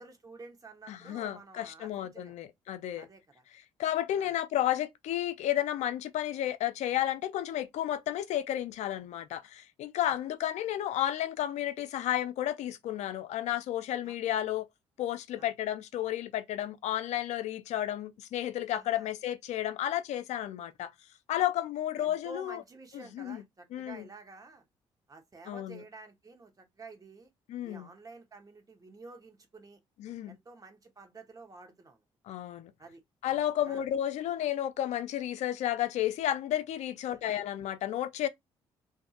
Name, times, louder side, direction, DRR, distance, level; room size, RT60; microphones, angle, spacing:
voice 1, 0.0-2.3 3.0-3.4 4.1-4.3 10.0-10.1 14.0-14.2 15.4-15.5 18.7-19.1 22.0-24.6 25.1-27.3 27.6-29.8 30.3-32.0 32.8-33.0 33.6-33.8 37.1-37.5, right 3 dB, 30° right, 1.0 m, -50 dB
voice 2, 0.9-3.1 3.8-14.7 15.0-20.9 21.3-22.6 23.2-23.4 23.7-24.0 25.5-25.8 27.5-27.9 30.0-30.4 32.3-32.7 33.2-38.3, left 12 dB, 70° left, 0.4 m, -32 dB
2.6 x 2.5 x 2.4 m
supercardioid pair, 65°, 12 cm